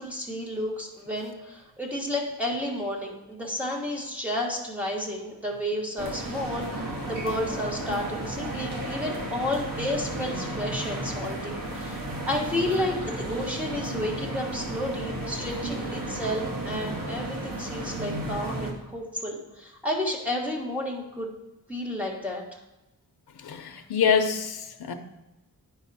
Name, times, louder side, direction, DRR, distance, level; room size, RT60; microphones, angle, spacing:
voice 1, 0.0-6.7 7.0-12.0 12.3-21.3 21.7-22.4, left 1 dB, 5° right, 1.6 m, -31 dB
sound 1, 6.0-18.7, right 1 dB, 65° right, 1.3 m, -33 dB
voice 2, 23.4-24.9, left 6 dB, 80° left, 0.8 m, -25 dB
9.2 x 5.7 x 4.1 m
wide cardioid pair, 170°, 37 cm